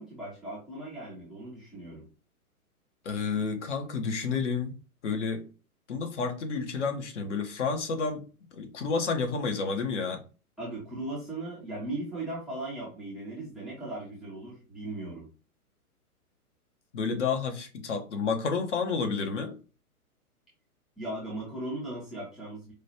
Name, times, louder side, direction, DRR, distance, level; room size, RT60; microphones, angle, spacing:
voice 1, 0.0-2.1 10.6-15.3 21.0-22.7, right 2 dB, ahead, 0.5 m, -38 dB
voice 2, 3.0-4.7 5.0-5.4 5.9-8.2 8.5-10.2 16.9-19.6, left 5 dB, 50° left, 1.0 m, -30 dB
4.9 x 2.3 x 2.9 m
figure-of-eight pair, 115°, 45 cm